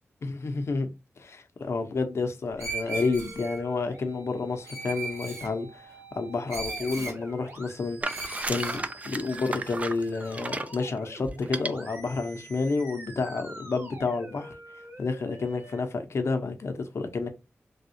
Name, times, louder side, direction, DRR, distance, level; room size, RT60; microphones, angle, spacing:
voice 1, 0.4-0.9 1.2-5.9 6.1-8.0 8.5-14.6 15.0-17.3, left 4 dB, 70° left, 0.7 m, -30 dB
Screech, 2.6-3.6 4.7-5.5 6.5-7.2 8.0-8.8, right 3 dB, 90° right, 1.4 m, -36 dB
sound 1, 2.8-15.8, right 1 dB, 50° right, 1.3 m, -47 dB
sound 2, 8.0-10.8 11.4-11.7, right 2 dB, 30° right, 0.3 m, -33 dB
3.5 x 2.3 x 2.7 m
wide cardioid pair, 85°, 5 cm